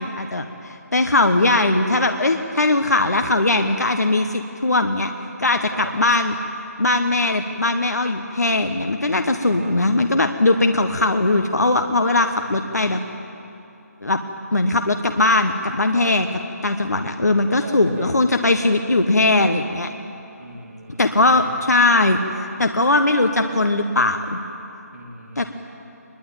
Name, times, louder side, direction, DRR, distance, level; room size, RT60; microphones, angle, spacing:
voice 1, 0.0-5.1 5.4-6.3 6.8-13.0 14.0-14.2 14.5-16.3 16.6-19.9 21.0-22.2 22.6-24.4 25.4-25.5, left 2 dB, 70° left, 5 dB, 1.3 m, -19 dB
voice 2, 9.4-9.8 12.4-12.8 15.9-16.1 17.5-18.2 20.4-21.7 24.9-25.5, right 2 dB, 65° right, 0 dB, 3.2 m, -38 dB
22.0 x 21.5 x 8.9 m, 2.9 s
figure-of-eight pair, 150°, 9 cm